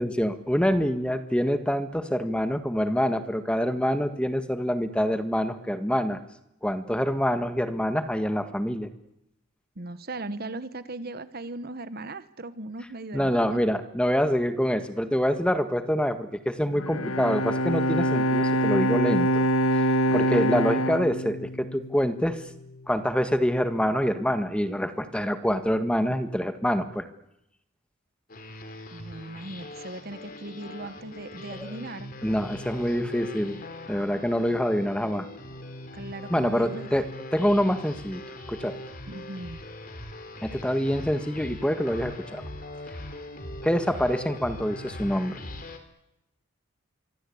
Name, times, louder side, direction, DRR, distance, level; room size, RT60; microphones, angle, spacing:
voice 1, 0.0-6.2 6.6-8.9 13.1-19.4 19.7-19.8 20.1-22.4 22.9-27.1 31.5-31.7 32.2-33.6 33.9-35.3 36.3-37.0 37.3-38.2 38.5-38.8 40.4-42.4 43.6-45.4, equal, 5° left, 9 dB, 1.7 m, -26 dB
voice 2, 9.8-13.6 28.9-32.1 35.9-36.9 39.1-39.6, right 2 dB, 45° right, 13 dB, 1.2 m, -38 dB
Bowed string instrument, 16.7-22.1, right 1 dB, 75° left, 1.1 m, -25 dB
sound 1, 28.3-45.8, left 1 dB, 40° left, 3.5 m, -41 dB
26.0 x 24.0 x 8.6 m, 0.82 s
head